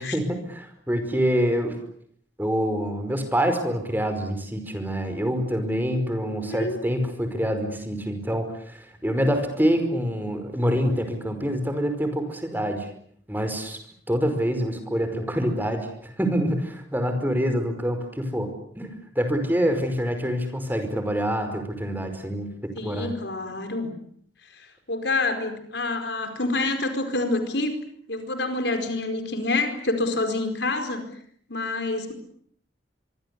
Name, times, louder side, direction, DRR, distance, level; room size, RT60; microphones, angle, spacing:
voice 1, 0.0-1.8 2.4-12.9 13.3-13.8 14.1-22.5 22.8-23.1, equal, 10° right, 7 dB, 5.0 m, -26 dB
voice 2, 6.4-6.8 22.8-23.9 24.6-27.8 28.1-31.1 31.5-32.1, left 2 dB, 70° left, 7 dB, 4.7 m, -27 dB
25.0 x 24.5 x 8.4 m, 0.65 s
head